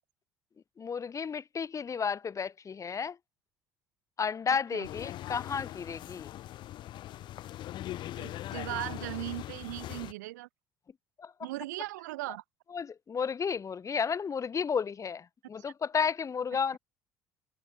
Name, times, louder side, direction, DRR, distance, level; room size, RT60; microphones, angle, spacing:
voice 1, 0.8-3.2 4.2-6.3 11.2-11.5 12.7-16.8, left 6 dB, 35° left, 3.6 m, -32 dB
sound 1, 4.8-10.1, left 14 dB, 55° left, 3.7 m, -41 dB
voice 2, 8.2-10.5 11.4-12.4, right 19 dB, 70° right, 2.1 m, -38 dB
figure-of-eight pair, 55°, 10 cm